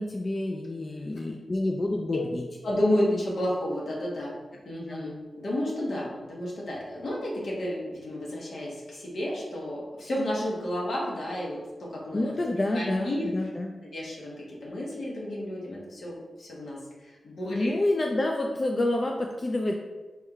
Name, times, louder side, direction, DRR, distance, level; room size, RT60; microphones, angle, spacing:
voice 1, 0.0-2.4 4.9-5.0 12.1-13.7 17.5-19.8, left 1 dB, 40° left, 1 dB, 0.3 m, -28 dB
voice 2, 2.6-4.4 4.6-12.3 12.7-13.3 13.8-14.4 14.6-17.7, left 1 dB, 80° left, -4 dB, 1.1 m, -31 dB
4.3 x 3.4 x 2.3 m, 1.2 s
cardioid pair, 60°, 0 cm